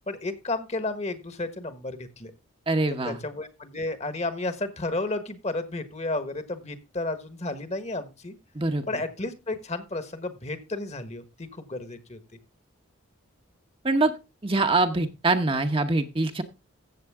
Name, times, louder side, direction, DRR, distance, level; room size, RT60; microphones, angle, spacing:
voice 1, 0.1-2.3 3.0-8.4 8.9-12.2, left 2 dB, 30° left, 11 dB, 1.3 m, -32 dB
voice 2, 2.7-3.2 8.5-8.8 13.8-14.1 14.4-16.4, right 2 dB, 25° right, 6 dB, 0.9 m, -24 dB
15.0 x 7.6 x 3.6 m, 0.27 s
head